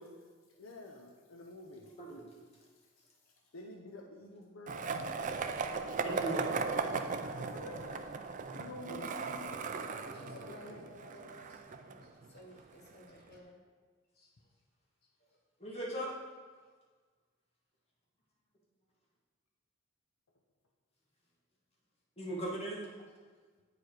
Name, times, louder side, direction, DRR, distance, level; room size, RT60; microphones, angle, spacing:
voice 1, 0.6-1.9 3.5-4.9 7.4-8.1 8.5-9.7 10.3-10.9, left 2 dB, 80° left, 1 dB, 0.7 m, -49 dB
Skateboard, 4.7-12.6, right 4 dB, 40° right, 0.4 m, -37 dB
voice 2, 6.0-6.5 8.9-9.0 15.6-16.1 22.2-22.8, right 1 dB, 30° left, -4 dB, 1.7 m, -38 dB
voice 3, 9.8-13.6 14.1-14.3 15.2-15.3 16.6-16.7, equal, 50° left, -1 dB, 1.5 m, -55 dB
8.8 x 4.8 x 4.7 m, 1.5 s
head